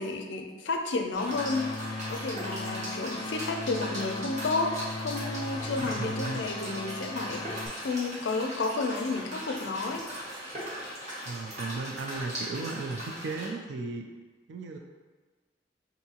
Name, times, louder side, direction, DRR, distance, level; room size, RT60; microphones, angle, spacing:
voice 1, 0.0-1.8 2.1-10.1, left 3 dB, 90° left, 4 dB, 0.4 m, -31 dB
sound 1, 1.1-13.5, equal, 40° right, 1.4 m, -39 dB
sound 2, 1.2-7.7, left 2 dB, 30° left, 0.4 m, -38 dB
voice 2, 5.8-6.4 11.3-14.1 14.5-14.8, right 3 dB, 80° right, 3 dB, 0.4 m, -35 dB
4.6 x 2.6 x 2.8 m, 1.4 s
head